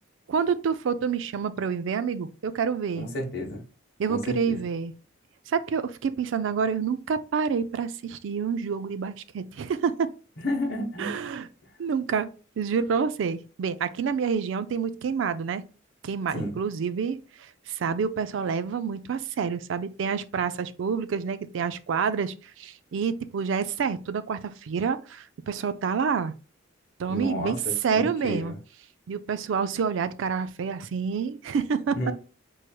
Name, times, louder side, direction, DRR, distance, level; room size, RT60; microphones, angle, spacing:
voice 1, 0.3-3.1 4.0-4.9 5.5-10.1 11.0-11.5 11.8-12.3 12.6-15.6 16.0-26.3 27.0-27.6 27.8-28.5 29.1-32.1, right 6 dB, 70° right, 0.3 m, -28 dB
voice 2, 3.0-3.6 4.1-4.6 10.4-11.2 16.3-16.5 27.1-28.6 31.9-32.1, left 1 dB, 50° left, 1.0 m, -31 dB
4.4 x 3.1 x 2.2 m
head